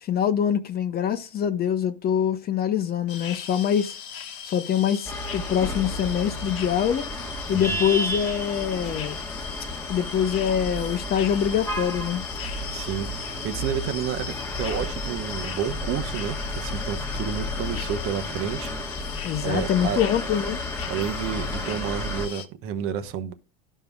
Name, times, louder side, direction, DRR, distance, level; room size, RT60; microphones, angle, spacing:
voice 1, 0.0-4.0 4.4-7.0 7.5-9.2 9.9-12.2 19.2-20.6, left 9 dB, 35° left, 0.7 m, -24 dB
sound 1, 3.1-22.4, left 7 dB, 50° left, 1.1 m, -38 dB
sound 2, 5.0-22.3, left 1 dB, 10° left, 1.3 m, -32 dB
voice 2, 12.7-18.7 19.0-19.1 19.4-20.0 20.9-23.3, right 8 dB, 50° right, 1.0 m, -30 dB
13.0 x 5.5 x 2.3 m
supercardioid pair, 105°, 29 cm